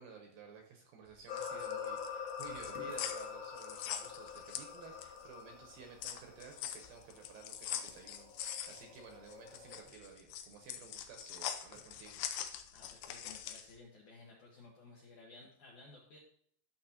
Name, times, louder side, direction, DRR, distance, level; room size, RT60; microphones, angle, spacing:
voice 1, 0.0-12.3, right 6 dB, 75° right, 3 dB, 2.3 m, -54 dB
sound 1, 1.1-5.3 5.6-13.7, left 10 dB, 90° left, 2.0 m, -43 dB
sound 2, 1.3-9.8, left 7 dB, 50° left, 2.2 m, -46 dB
sound 3, 1.6-1.9 2.7-3.2 4.5-4.8 9.9-10.1 11.7-12.0, right 2 dB, 90° right, 3.4 m, -57 dB
voice 2, 12.7-16.2, left 3 dB, 70° left, -3 dB, 1.9 m, -56 dB
11.5 x 6.4 x 2.8 m, 0.63 s
omnidirectional pair, 4.9 m